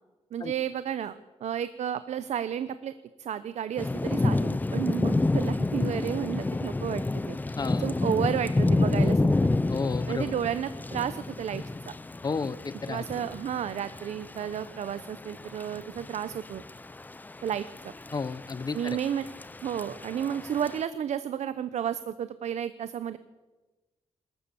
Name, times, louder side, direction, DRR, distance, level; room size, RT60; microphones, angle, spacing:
voice 1, 0.3-2.9 3.2-7.4 7.8-9.5 10.1-11.6 12.9-16.6 17.4-17.7 18.7-19.3 19.6-23.2, right 9 dB, 85° right, 13 dB, 0.8 m, -32 dB
Thunder / Rain, 3.8-20.8, left 2 dB, 15° left, 0.6 m, -29 dB
voice 2, 7.6-7.9 9.7-10.3 12.2-13.1 18.1-19.0, left 4 dB, 35° left, 15 dB, 0.9 m, -32 dB
26.0 x 14.0 x 7.0 m, 1.2 s
wide cardioid pair, 125°, 11 cm